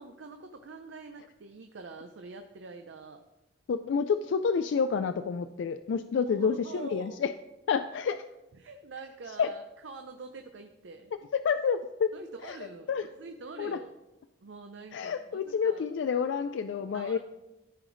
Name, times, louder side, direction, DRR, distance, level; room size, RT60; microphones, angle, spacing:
voice 1, 0.0-3.2 6.2-7.2 8.5-11.1 12.1-13.9 14.4-15.8 16.9-17.2, right 3 dB, 85° right, 6 dB, 0.6 m, -45 dB
voice 2, 3.7-7.3 7.7-8.2 9.4-9.5 11.3-12.1 12.4-12.6 12.9-13.1 13.6-13.8 14.9-17.2, left 6 dB, 75° left, 10 dB, 0.3 m, -29 dB
13.5 x 5.0 x 3.9 m, 0.97 s
head